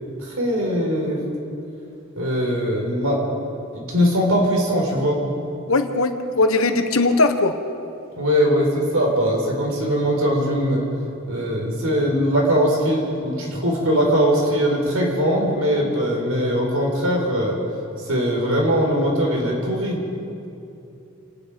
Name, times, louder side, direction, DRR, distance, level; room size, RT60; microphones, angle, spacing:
voice 1, 0.2-1.2 2.2-3.2 3.7-5.2 8.2-10.8 11.3-17.6 18.0-20.0, equal, 80° right, 0 dB, 5.2 m, -21 dB
voice 2, 5.7-7.5, left 3 dB, 70° left, 7 dB, 1.4 m, -19 dB
28.5 x 19.0 x 5.3 m, 2.7 s
head